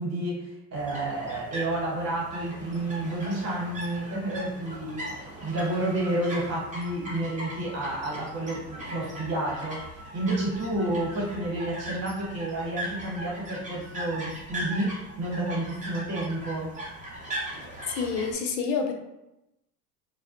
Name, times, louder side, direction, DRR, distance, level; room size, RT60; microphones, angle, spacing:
voice 1, 0.0-16.7, right 1 dB, 30° right, -4 dB, 1.3 m, -30 dB
sound 1, 0.7-18.3, right 1 dB, 15° right, 0.8 m, -39 dB
Wind instrument woodwind instrument, 5.5-11.7, equal, ahead, 0.4 m, -51 dB
voice 2, 18.0-18.9, left 5 dB, 80° left, 3 dB, 0.6 m, -27 dB
2.3 x 2.1 x 2.5 m, 0.89 s
hypercardioid pair, 75°, 48 cm